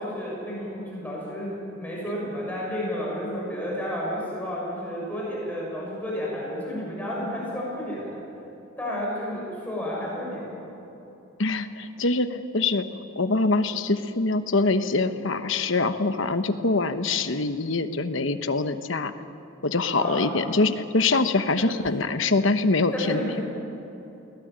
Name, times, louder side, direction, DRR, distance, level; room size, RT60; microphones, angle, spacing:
voice 1, 0.0-8.2 8.8-10.6 20.0-20.3 21.6-21.7 22.9-23.4, equal, 5° left, -5 dB, 6.7 m, -31 dB
voice 2, 11.4-12.8 13.2-19.1 19.6-23.4, left 3 dB, 65° left, 9 dB, 1.1 m, -24 dB
23.0 x 18.5 x 8.9 m, 2.9 s
head